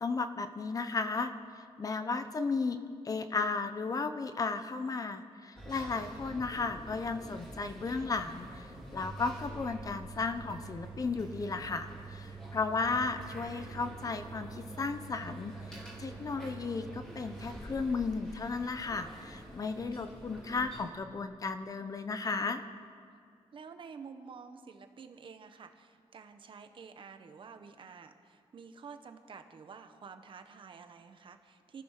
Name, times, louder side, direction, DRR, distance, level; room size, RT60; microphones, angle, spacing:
voice 1, 0.0-1.3 1.8-22.6, left 4 dB, 35° left, 9 dB, 0.9 m, -34 dB
sound 1, 5.5-20.9, right 2 dB, 5° left, 4.4 m, -46 dB
voice 2, 23.5-31.8, right 5 dB, 50° right, 7 dB, 1.3 m, -50 dB
27.5 x 14.0 x 6.7 m, 2.3 s
wide cardioid pair, 170°, 11 cm